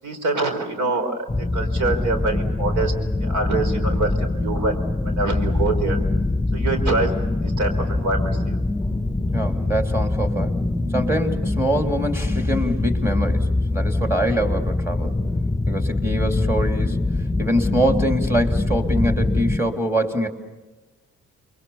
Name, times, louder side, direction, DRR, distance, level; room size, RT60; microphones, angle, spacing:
voice 1, 0.0-2.9 3.2-6.0 6.5-7.1 7.4-8.6, right 3 dB, 75° right, 6 dB, 4.8 m, -25 dB
sound 1, 1.3-19.6, left 2 dB, 5° left, 2.4 m, -23 dB
voice 2, 9.3-10.6 10.9-15.1 15.7-17.0 17.4-20.3, equal, 10° right, 4 dB, 3.1 m, -24 dB
29.0 x 23.0 x 7.1 m, 1.2 s
cardioid pair, 90°, 30 cm